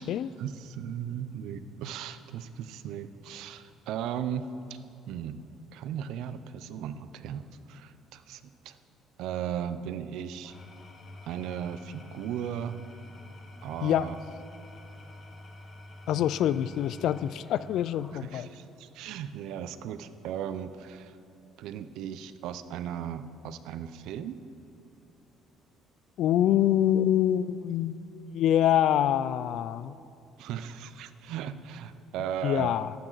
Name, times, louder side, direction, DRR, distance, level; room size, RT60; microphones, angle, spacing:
voice 1, 0.4-4.4 4.7-4.8 5.1-5.4 5.7-8.8 9.2-10.5 11.2-12.8 13.6-14.2 16.2-16.3 18.3-21.2 21.6-24.4 30.4-32.8, right 9 dB, 75° right, 12 dB, 0.5 m, -36 dB
Engine / Tools, 10.3-18.6, left 1 dB, 30° left, 1.1 m, -48 dB
voice 2, 16.1-18.5 26.2-28.0 28.3-29.9 32.4-32.9, left 11 dB, 65° left, 17 dB, 0.3 m, -25 dB
13.5 x 12.5 x 4.0 m, 2.7 s
cardioid pair, 135°, 0 cm